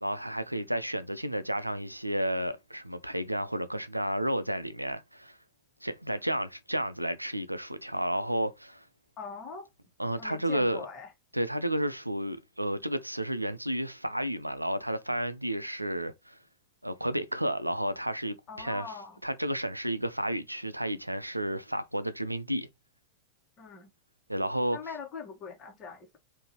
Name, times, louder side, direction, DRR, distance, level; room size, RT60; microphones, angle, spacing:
voice 1, 0.0-5.4 5.8-8.8 10.0-10.9 11.3-16.4 16.8-18.9 19.2-22.7 24.3-24.8, equal, 90° right, 0.4 m, -32 dB
voice 2, 9.2-9.7 10.2-11.1 18.5-19.2 23.6-23.9 24.7-26.2, left 5 dB, 30° left, 1.3 m, -42 dB
3.7 x 2.6 x 2.9 m
figure-of-eight pair, 90°, 0 cm